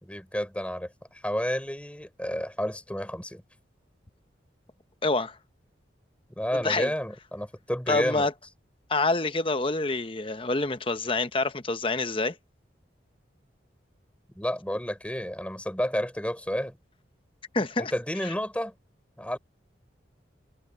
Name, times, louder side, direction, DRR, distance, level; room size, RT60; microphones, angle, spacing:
voice 1, 0.0-0.9 1.2-3.4 6.4-8.3 14.4-16.8 17.8-18.7 19.2-19.4, equal, 5° left, 4.1 m, -31 dB
voice 2, 5.0-5.4 6.6-6.9 7.9-8.3 8.9-12.4 17.5-17.9 18.2-18.3, left 3 dB, 30° left, 0.9 m, -27 dB
head